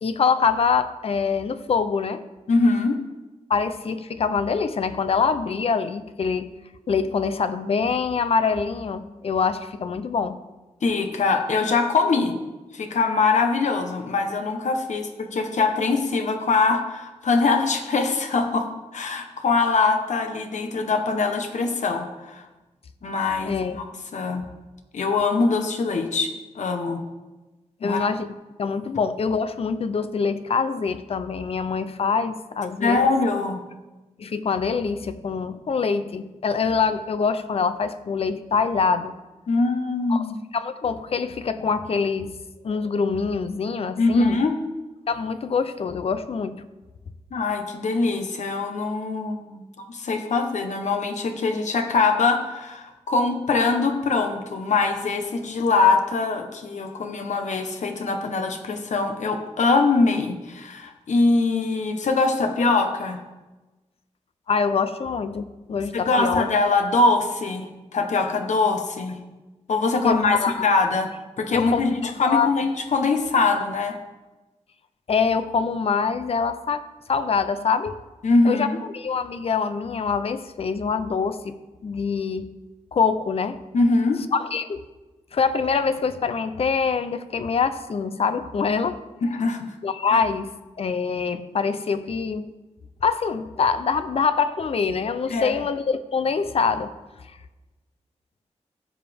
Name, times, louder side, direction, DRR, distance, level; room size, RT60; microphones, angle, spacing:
voice 1, 0.0-2.2 3.5-6.5 6.9-10.4 23.4-23.8 27.8-28.3 28.6-33.0 34.2-39.1 40.1-40.3 40.5-44.4 45.1-46.6 64.5-66.5 70.0-70.5 71.5-72.5 75.1-76.8 77.1-78.0 78.4-78.7 78.9-81.6 81.8-82.5 82.9-83.6 84.3-84.9 85.3-89.0 89.8-90.5 90.8-92.5 93.0-96.9, left 5 dB, 55° left, 12 dB, 0.6 m, -24 dB
voice 2, 2.5-3.0 10.8-12.3 12.7-22.5 23.0-23.8 24.1-24.4 24.9-27.0 27.8-28.1 32.8-33.6 39.5-40.4 44.0-44.6 47.3-63.2 65.9-69.2 69.7-71.1 71.4-73.9 78.2-78.7 83.7-84.2 89.2-89.7 90.1-90.2 95.3-95.6, left 3 dB, 80° left, 5 dB, 1.1 m, -23 dB
15.5 x 7.3 x 3.5 m, 1.1 s
wide cardioid pair, 165°, 12 cm